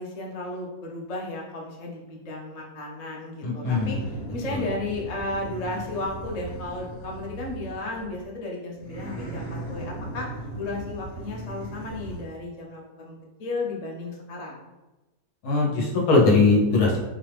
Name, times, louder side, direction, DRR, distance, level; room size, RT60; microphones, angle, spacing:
voice 1, 0.0-14.6, left 2 dB, 90° left, -1 dB, 0.3 m, -34 dB
voice 2, 3.4-3.9 4.5-4.6 15.4-17.0, left 3 dB, 65° left, -1 dB, 1.2 m, -20 dB
sound 1, 3.6-8.3 8.7-12.2, right 2 dB, 5° right, 1.3 m, -37 dB
3.9 x 2.4 x 3.3 m, 1.1 s
omnidirectional pair, 1.7 m